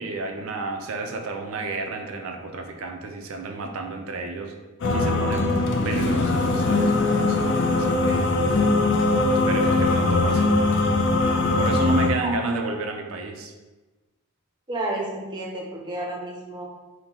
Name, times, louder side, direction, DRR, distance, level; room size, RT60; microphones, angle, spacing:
voice 1, 0.0-4.5 4.9-5.5 5.8-8.3 9.3-10.5 11.6-13.5, right 3 dB, 70° right, 4 dB, 0.5 m, -31 dB
sound 1, 4.8-12.1, left 2 dB, 55° left, 0.4 m, -21 dB
voice 2, 14.7-16.6, right 1 dB, 20° right, -2 dB, 0.6 m, -31 dB
4.4 x 2.1 x 3.7 m, 1.2 s
head